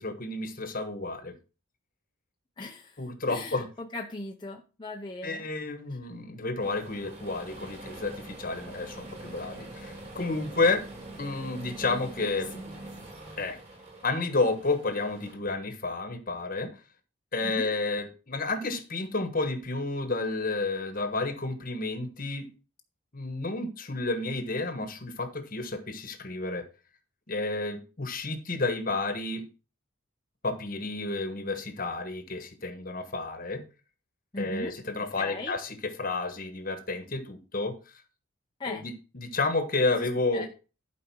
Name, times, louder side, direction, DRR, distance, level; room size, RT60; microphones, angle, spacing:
voice 1, 0.0-1.3 3.0-3.7 5.2-10.8 11.2-12.5 13.4-13.6 14.0-16.7 17.3-22.5 23.1-26.6 27.3-29.4 30.4-33.6 34.4-37.7 38.7-40.5, left 3 dB, 40° left, 1.3 m, -31 dB
voice 2, 2.6-5.5 11.9-12.0 12.5-12.8 17.4-17.7 34.3-34.7 35.2-35.5 38.6-38.9 39.9-40.5, left 2 dB, 20° left, 0.7 m, -39 dB
sound 1, 6.6-15.4, right 2 dB, 30° right, 3.1 m, -44 dB
11.5 x 5.1 x 4.6 m
head